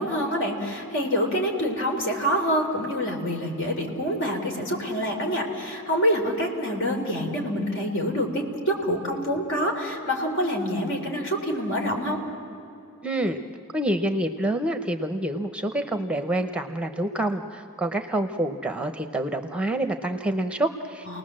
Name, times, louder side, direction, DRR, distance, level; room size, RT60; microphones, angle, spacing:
voice 1, 0.0-12.2 21.1-21.2, equal, 60° left, 2 dB, 3.7 m, -26 dB
voice 2, 13.0-13.4 13.7-21.2, right 1 dB, 5° right, 7 dB, 0.8 m, -27 dB
30.0 x 19.5 x 7.6 m, 2.7 s
head